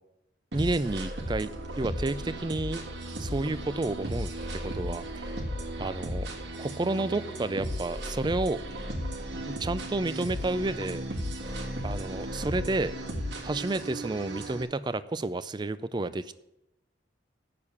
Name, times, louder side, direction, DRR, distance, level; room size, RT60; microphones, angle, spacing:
voice 1, 0.5-2.8 3.2-4.3 4.7-5.3 5.8-6.3 6.6-8.6 9.5-11.0 11.8-12.9 13.4-16.4, right 2 dB, 25° right, 15 dB, 0.4 m, -30 dB
sound 1, 0.5-14.6, equal, 70° right, 1.6 m, -35 dB
8.4 x 6.8 x 7.1 m, 0.87 s
head